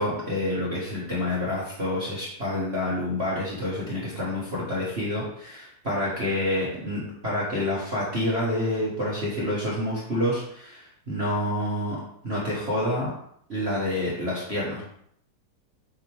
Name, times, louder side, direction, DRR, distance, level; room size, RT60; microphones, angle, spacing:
voice 1, 0.0-12.0 12.2-13.1 13.5-14.8, left 1 dB, 55° right, -7 dB, 0.7 m, -28 dB
7.9 x 3.6 x 4.6 m, 0.68 s
omnidirectional pair, 4.0 m